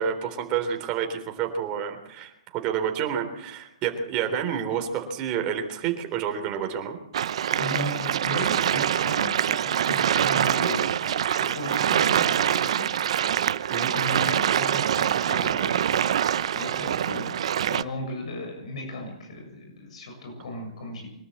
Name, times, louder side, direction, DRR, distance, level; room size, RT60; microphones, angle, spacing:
voice 1, 0.0-7.0 13.7-13.9, right 8 dB, 25° right, 4 dB, 3.7 m, -29 dB
sound 1, 7.1-17.8, right 10 dB, 65° right, 0.9 m, -24 dB
voice 2, 7.5-12.9 13.9-17.3 17.6-21.1, left 1 dB, 75° left, 3 dB, 7.4 m, -36 dB
24.0 x 12.5 x 8.6 m, 0.79 s
hypercardioid pair, 155°, 3 cm